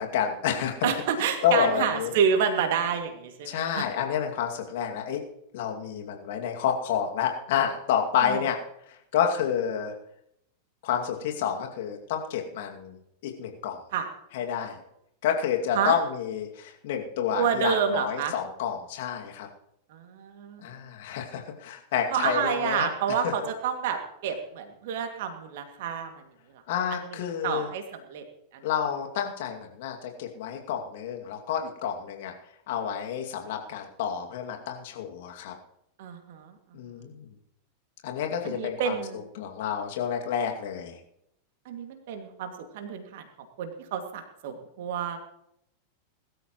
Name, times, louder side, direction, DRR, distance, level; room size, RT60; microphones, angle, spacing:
voice 1, 0.0-0.9 1.4-2.1 3.5-5.2 5.5-8.6 8.9-9.9 10.8-13.0 13.2-13.8 14.3-14.8 15.2-19.5 20.6-22.9 23.2-23.3 26.7-27.7 28.6-32.3 32.7-35.5 36.7-37.3 38.0-38.9 39.4-41.0, left 8 dB, 55° left, 2 dB, 2.4 m, -29 dB
voice 2, 0.8-3.9 8.2-8.4 13.9-14.1 15.8-16.0 17.3-18.3 19.9-20.6 22.1-26.1 26.9-27.0 27.4-27.8 28.1-28.2 28.5-28.6 36.0-36.6 38.4-39.2 41.7-43.2 43.6-45.2, right 7 dB, 55° right, 5 dB, 2.4 m, -29 dB
21.0 x 13.0 x 3.1 m, 0.76 s
figure-of-eight pair, 90°, 0 cm